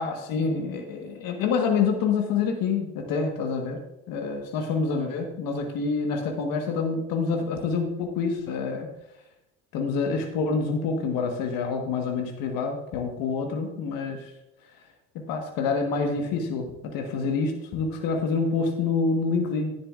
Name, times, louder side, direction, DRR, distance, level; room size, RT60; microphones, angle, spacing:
voice 1, 0.0-3.8 4.1-8.9 9.7-14.3 15.3-19.8, left 4 dB, 75° left, 2 dB, 1.5 m, -27 dB
12.5 x 10.5 x 2.5 m, 0.89 s
hypercardioid pair, 55°, 35 cm